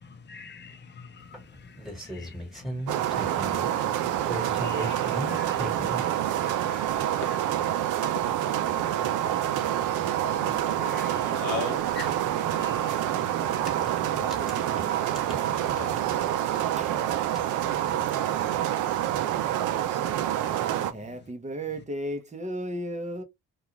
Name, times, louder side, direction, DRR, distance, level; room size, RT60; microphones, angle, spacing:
voice 1, 0.3-1.2 2.1-2.3 3.7-4.0 4.6-5.6 5.9-6.1 6.4-6.8 10.8-11.3 12.6-13.0, left 5 dB, 35° left, 0.6 m, -46 dB
sound 1, 1.3-3.7 4.1-6.0 6.9-7.0 7.5-7.6 7.8-7.9 8.1-8.2 10.2-10.3 10.5-10.6 12.6-12.8 13.5-16.3 16.6-18.2, equal, ahead, 1.4 m, -37 dB
sound 2, 2.9-20.9, right 11 dB, 85° right, 0.5 m, -27 dB
voice 2, 6.6-7.5 8.0-8.2 10.2-11.9 15.7-16.1, left 11 dB, 80° left, 0.5 m, -39 dB
voice 3, 10.4-11.0 14.0-15.0 16.8-17.0 18.1-18.2 20.9-23.2, right 1 dB, 25° right, 0.7 m, -36 dB
2.4 x 2.3 x 2.9 m
cardioid pair, 90°, 30 cm